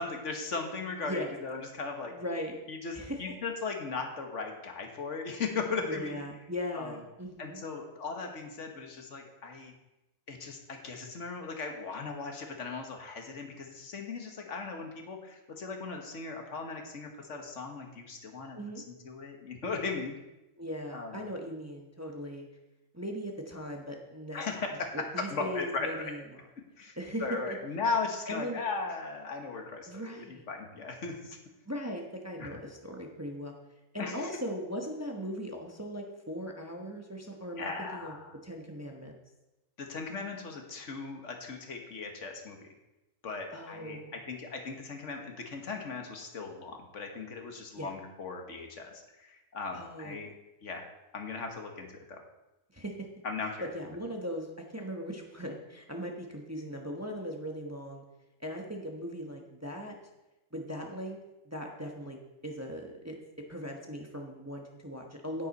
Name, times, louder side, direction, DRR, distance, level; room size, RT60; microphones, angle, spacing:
voice 1, 0.0-2.1 2.7-6.2 6.7-7.0 7.4-9.7 10.3-18.6 18.9-20.1 20.9-21.2 24.3-26.1 26.8-26.9 27.2-31.4 32.4-32.6 34.0-34.3 37.6-38.4 39.8-42.7 43.2-50.3 50.6-50.9 51.1-52.2 53.2-53.7, left 4 dB, 70° left, 3 dB, 1.6 m, -37 dB
voice 2, 1.0-1.3 2.1-2.5 2.9-3.3 5.8-7.6 18.5-18.8 20.6-22.5 22.9-24.4 24.9-26.2 27.0-27.6 28.3-28.6 29.9-30.4 31.7-33.5 33.9-38.1 38.4-39.1 43.5-44.1 47.8-47.9 49.7-50.2 52.7-53.1 53.6-58.0 58.4-59.9 60.5-61.2 61.5-62.2 62.4-63.2 63.5-65.5, equal, 15° right, 1 dB, 0.9 m, -39 dB
9.7 x 9.4 x 4.1 m, 0.99 s
omnidirectional pair, 1.3 m